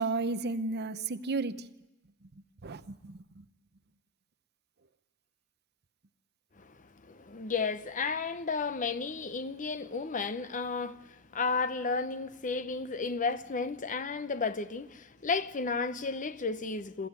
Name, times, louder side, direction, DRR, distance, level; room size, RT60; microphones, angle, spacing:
voice 1, 0.0-1.6 2.6-3.2, right 3 dB, 45° right, 0.8 m, -32 dB
voice 2, 6.6-17.1, left 4 dB, 35° left, 0.8 m, -33 dB
22.0 x 15.0 x 9.6 m
head